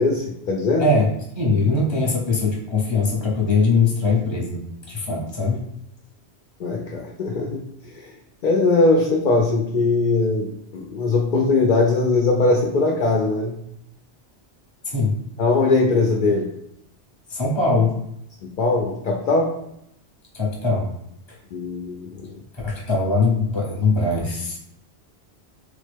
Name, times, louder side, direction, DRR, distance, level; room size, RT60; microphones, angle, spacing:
voice 1, 0.0-0.9 6.6-8.1 8.4-13.6 15.4-16.5 18.6-19.5 21.5-22.3, left 3 dB, 60° left, 0 dB, 0.5 m, -20 dB
voice 2, 0.8-5.6 14.9-15.1 17.3-18.0 20.3-20.9 22.6-24.6, left 3 dB, 30° left, -3 dB, 0.8 m, -21 dB
3.4 x 2.1 x 3.3 m, 0.78 s
omnidirectional pair, 1.1 m